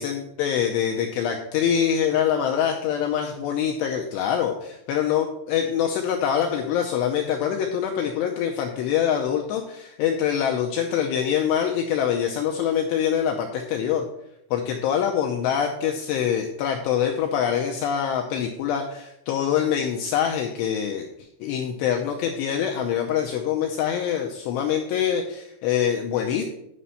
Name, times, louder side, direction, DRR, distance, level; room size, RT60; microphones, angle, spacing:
voice 1, 0.0-14.1 14.5-21.0 21.4-26.4, left 8 dB, 85° left, 2 dB, 2.4 m, -24 dB
9.9 x 5.2 x 5.7 m, 0.79 s
omnidirectional pair, 5.7 m